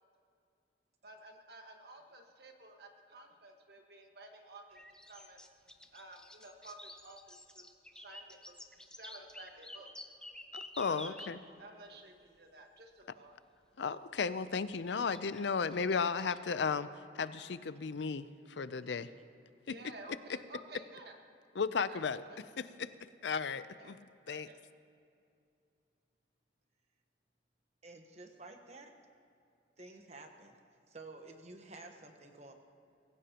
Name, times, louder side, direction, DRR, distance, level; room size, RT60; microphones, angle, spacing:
voice 1, 1.0-4.8 5.1-5.4 5.9-7.6 7.9-10.1 10.9-13.4 19.6-21.2 21.9-22.0 22.3-22.4 23.8-23.9 24.3-24.6, right 2 dB, 60° right, 3 dB, 1.5 m, -53 dB
sound 1, 4.7-11.3 13.0-13.1 14.9-16.6, left 1 dB, 5° left, 0.6 m, -50 dB
voice 2, 10.5-11.4 13.8-16.9 17.2-19.1 21.6-22.2 22.6-22.9 23.2-24.0 24.3-24.5, left 5 dB, 75° left, 14 dB, 0.5 m, -34 dB
voice 3, 27.8-28.9 29.8-30.6 30.9-32.5, right 2 dB, 35° right, 4 dB, 1.2 m, -51 dB
24.0 x 15.5 x 2.9 m, 2.5 s
head